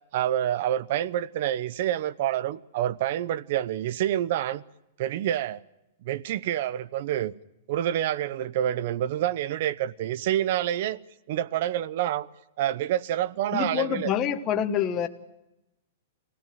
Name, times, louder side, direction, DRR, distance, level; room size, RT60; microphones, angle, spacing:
voice 1, 0.1-4.6 5.0-5.6 6.0-7.3 7.7-11.0 11.3-12.3 12.6-14.1, right 11 dB, 45° right, 0.8 m, -27 dB
voice 2, 13.5-15.1, left 9 dB, 20° left, 1.2 m, -26 dB
25.5 x 17.5 x 9.1 m
supercardioid pair, 170°, 0 cm